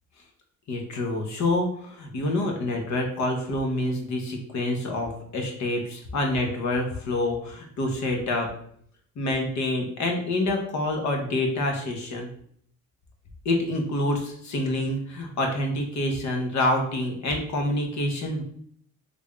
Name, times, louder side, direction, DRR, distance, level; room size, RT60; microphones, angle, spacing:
voice 1, 0.7-8.5 9.2-12.3 13.4-18.4, left 1 dB, 70° left, 2 dB, 1.0 m, -27 dB
3.4 x 2.6 x 3.4 m, 0.64 s
cardioid pair, 90°, 30 cm